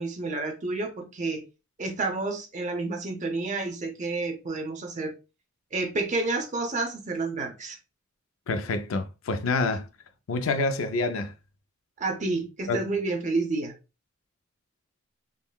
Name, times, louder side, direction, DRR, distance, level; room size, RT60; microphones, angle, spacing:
voice 1, 0.0-1.4 1.8-5.1 5.7-7.8 12.0-13.7, right 3 dB, 35° right, 0.7 m, -30 dB
voice 2, 8.5-9.9 10.3-11.3 12.7-12.8, left 3 dB, 70° left, 0.4 m, -27 dB
3.6 x 2.1 x 2.2 m
head